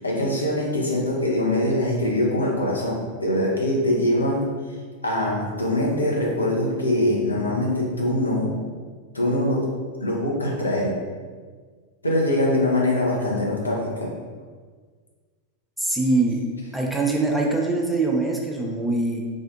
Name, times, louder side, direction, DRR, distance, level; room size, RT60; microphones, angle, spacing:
voice 1, 0.0-4.4 5.0-8.5 9.1-9.6 10.0-11.0 12.0-14.1, left 1 dB, 80° left, -3 dB, 0.6 m, -23 dB
voice 2, 15.8-16.4 16.7-19.2, right 2 dB, 5° right, -1 dB, 0.4 m, -23 dB
3.6 x 2.4 x 2.4 m, 1.5 s
figure-of-eight pair, 90°, 0 cm